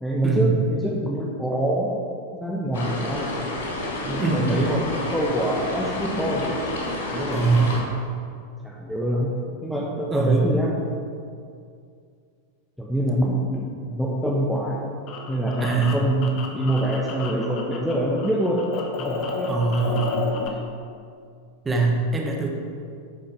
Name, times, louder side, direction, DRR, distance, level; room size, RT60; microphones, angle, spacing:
voice 1, 0.0-1.9 2.3-3.3 3.9-6.5 7.1-7.6 8.4-9.3 9.6-10.7 12.8-14.8 15.3-18.6 19.0-19.6, right 1 dB, ahead, -4 dB, 1.2 m, -25 dB
sound 1, 2.7-7.8, left 1 dB, 60° left, 1.9 m, -29 dB
voice 2, 4.2-4.5 7.3-7.9 10.1-10.4 15.6-16.0 19.5-20.3 21.6-22.5, right 4 dB, 15° right, 1 dB, 1.5 m, -22 dB
sound 2, 14.6-17.9 18.2-20.5, left 5 dB, 40° left, 1.3 m, -32 dB
11.5 x 8.4 x 3.4 m, 2.3 s
figure-of-eight pair, 90°, 0 cm